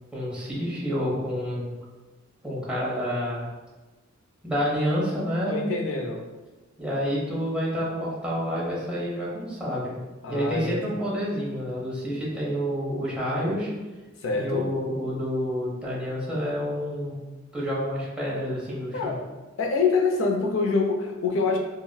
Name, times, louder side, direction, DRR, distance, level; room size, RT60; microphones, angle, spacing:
voice 1, 0.1-1.7 2.4-3.5 4.4-5.7 6.8-9.9 10.3-13.7 14.3-17.2 17.5-19.1, equal, 5° right, -7 dB, 0.7 m, -28 dB
voice 2, 5.5-6.3 10.2-10.8 14.2-14.7 18.9-19.1 19.6-21.6, left 4 dB, 70° left, 2 dB, 0.4 m, -25 dB
3.7 x 2.0 x 2.2 m, 1.2 s
head